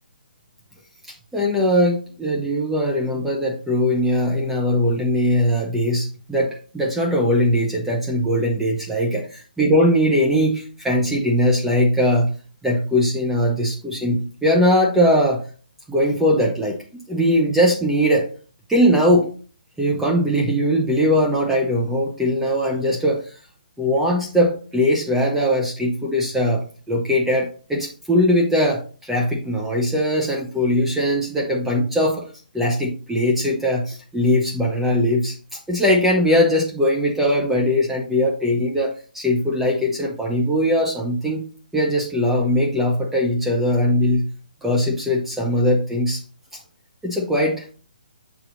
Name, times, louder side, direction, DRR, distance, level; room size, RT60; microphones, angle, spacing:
voice 1, 1.3-12.3 12.6-15.4 15.9-18.3 18.7-19.3 19.8-23.4 23.8-32.2 32.5-41.4 41.7-44.3 44.6-46.2 47.0-47.7, equal, 5° right, -1 dB, 0.9 m, -20 dB
6.8 x 4.5 x 4.0 m, 0.38 s
hypercardioid pair, 150°, 5 cm